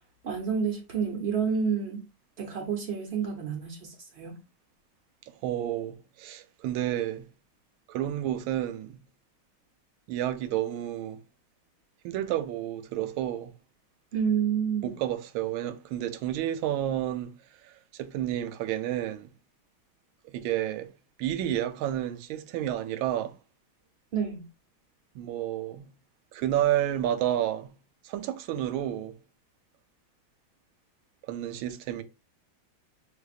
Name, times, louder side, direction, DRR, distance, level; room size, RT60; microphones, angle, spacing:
voice 1, 0.2-2.0 2.4-4.4 14.1-14.9 24.1-24.5, right 6 dB, 60° right, 0.6 m, -29 dB
voice 2, 5.3-7.3 7.9-9.0 10.1-11.2 12.0-13.5 14.8-17.3 17.6-19.3 20.3-20.9 21.2-23.3 25.1-25.9 26.3-27.7 28.0-29.1 31.3-32.0, right 12 dB, 85° right, 1.4 m, -30 dB
6.2 x 2.7 x 2.4 m
omnidirectional pair, 2.2 m